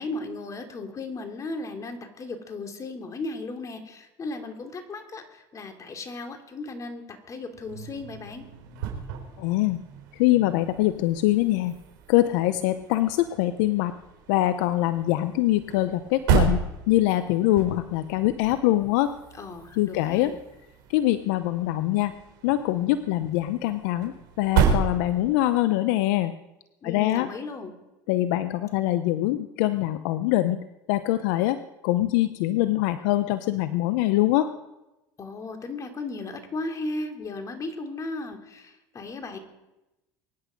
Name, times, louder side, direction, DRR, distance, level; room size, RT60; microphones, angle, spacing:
voice 1, 0.0-8.5 19.4-20.4 26.8-27.7 35.2-39.4, left 3 dB, 30° left, 4 dB, 3.1 m, -36 dB
sound 1, 7.5-25.6, right 7 dB, 80° right, 4.5 m, -32 dB
voice 2, 9.4-9.8 10.1-11.8 12.1-13.9 14.3-19.1 19.8-20.3 20.9-22.1 22.4-26.3 26.8-27.3 28.1-30.6 30.9-31.6 31.8-34.5, left 15 dB, 75° left, 11 dB, 0.8 m, -23 dB
23.5 x 10.5 x 5.3 m, 0.97 s
supercardioid pair, 90°, 10 cm